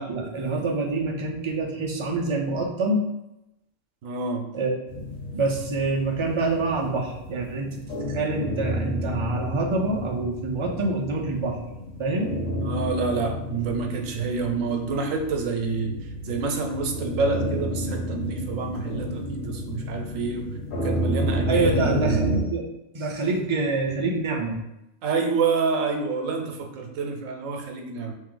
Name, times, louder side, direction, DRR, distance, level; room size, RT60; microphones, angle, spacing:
voice 1, 0.0-3.0 4.5-4.8 5.3-7.8 8.1-11.6 12.0-12.3 21.5-22.7 22.9-24.6, right 3 dB, 55° right, 0 dB, 0.3 m, -26 dB
voice 2, 4.0-4.5 12.6-20.5 20.8-22.2 25.0-28.1, right 4 dB, 90° right, 4 dB, 1.0 m, -28 dB
sound 1, 4.9-22.4, equal, 80° left, 1.4 m, -31 dB
3.4 x 3.1 x 3.7 m, 0.90 s
omnidirectional pair, 1.3 m